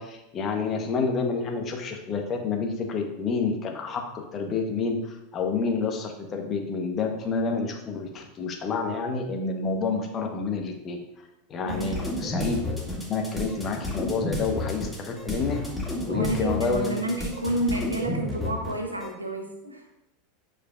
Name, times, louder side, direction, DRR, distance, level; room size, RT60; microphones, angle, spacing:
voice 1, 0.0-11.0 11.5-12.6 13.0-15.6 16.1-17.0, left 4 dB, 30° left, 3 dB, 1.1 m, -29 dB
voice 2, 11.6-12.2 16.1-19.9, right 1 dB, 85° right, 2 dB, 1.0 m, -30 dB
sound 1, 11.7-19.1, left 2 dB, 5° left, 2.2 m, -32 dB
8.3 x 5.1 x 2.5 m, 0.89 s
figure-of-eight pair, 85°, 0 cm